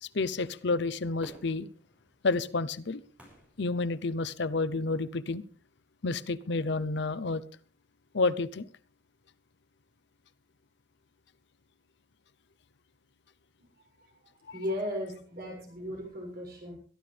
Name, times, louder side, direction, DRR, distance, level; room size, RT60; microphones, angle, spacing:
voice 1, 0.0-1.7 2.2-3.0 3.6-5.4 6.0-7.4 8.1-8.7, left 3 dB, 65° left, 0.7 m, -30 dB
Fireworks, 1.2-4.5 5.1-5.2, right 1 dB, 5° right, 6.4 m, -55 dB
voice 2, 14.5-16.8, left 1 dB, 55° right, 7.0 m, -36 dB
22.5 x 12.0 x 3.4 m
head